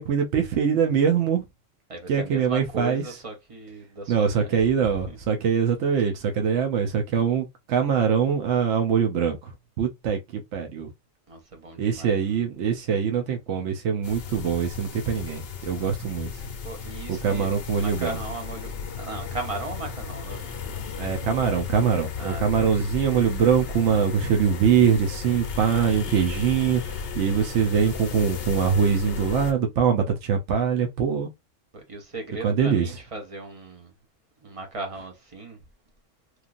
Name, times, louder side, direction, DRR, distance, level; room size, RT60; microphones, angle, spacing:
voice 1, 0.0-1.4 2.1-3.0 4.1-10.9 11.8-16.3 17.1-18.2 21.0-31.3 32.4-32.9, right 7 dB, 65° right, 0.9 m, -23 dB
voice 2, 1.9-4.5 4.8-5.2 11.3-12.4 16.6-17.6 17.8-18.7 19.0-20.8 22.2-22.7 31.7-33.9 34.4-35.6, right 2 dB, 35° right, 0.6 m, -37 dB
sound 1, 14.0-29.5, left 6 dB, 60° left, 0.7 m, -35 dB
3.1 x 2.4 x 2.4 m
omnidirectional pair, 1.4 m